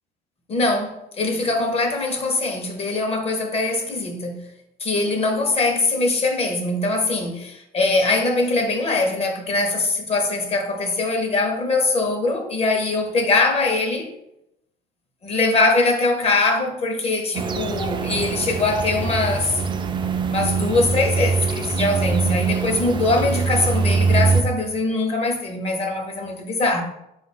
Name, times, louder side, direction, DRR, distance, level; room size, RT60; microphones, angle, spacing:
voice 1, 0.5-4.5 4.8-14.1 15.2-19.6 20.3-26.8, left 3 dB, 35° left, 0.8 m, -22 dB
sound 1, 17.3-24.4, right 4 dB, 30° right, 0.4 m, -23 dB
3.9 x 2.5 x 4.2 m
cardioid pair, 110°, 17 cm